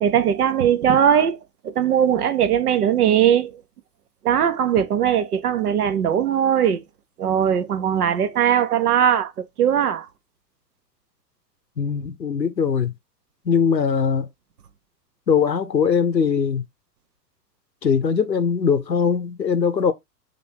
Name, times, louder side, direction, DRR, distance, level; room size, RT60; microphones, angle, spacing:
voice 1, 0.0-3.6 4.2-6.8 7.2-10.1, right 9 dB, 65° right, 0.8 m, -20 dB
voice 2, 11.8-12.9 13.5-14.3 15.3-16.6 17.8-19.9, left 6 dB, 90° left, 0.7 m, -21 dB
3.0 x 2.6 x 4.4 m
figure-of-eight pair, 95°, 49 cm